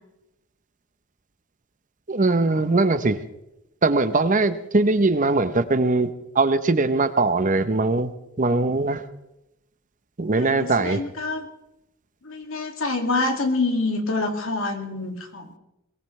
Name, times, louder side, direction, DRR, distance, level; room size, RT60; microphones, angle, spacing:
voice 1, 2.1-3.2 3.8-6.1 6.3-8.1 8.4-9.0 10.2-11.0, right 3 dB, 40° right, 11 dB, 0.8 m, -21 dB
voice 2, 10.4-11.5 12.2-15.6, left 3 dB, 70° left, 4 dB, 2.3 m, -26 dB
22.0 x 18.5 x 3.3 m, 0.88 s
head